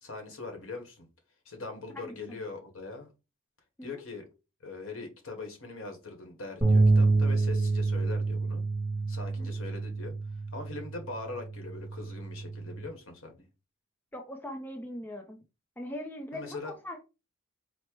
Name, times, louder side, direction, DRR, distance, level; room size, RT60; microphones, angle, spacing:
voice 1, 0.0-1.1 1.4-3.1 3.8-4.2 4.6-8.6 9.1-10.1 10.5-13.5 16.3-16.7, left 3 dB, 80° left, 1.3 m, -41 dB
voice 2, 1.9-2.4 3.8-3.9 9.4-9.5 14.1-15.4 15.8-17.0, left 1 dB, 10° left, 0.5 m, -41 dB
sound 1, 6.6-12.9, right 3 dB, 10° right, 1.0 m, -27 dB
4.3 x 2.1 x 4.5 m
head